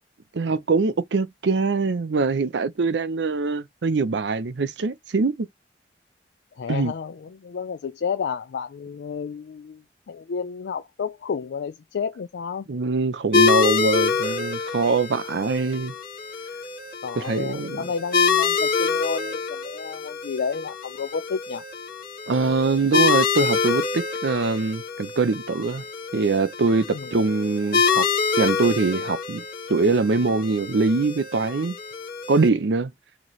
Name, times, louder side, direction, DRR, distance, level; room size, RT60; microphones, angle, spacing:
voice 1, 0.3-5.5 6.7-6.9 12.7-15.9 17.2-17.9 22.3-25.8 26.1-28.1 28.4-31.8 32.3-32.9, right 4 dB, 80° right, 0.5 m, -23 dB
voice 2, 6.6-12.7 17.0-21.6 26.9-27.1, left 6 dB, 70° left, 0.4 m, -31 dB
sound 1, 13.3-32.5, left 5 dB, 55° left, 1.5 m, -26 dB
4.0 x 2.9 x 3.0 m
head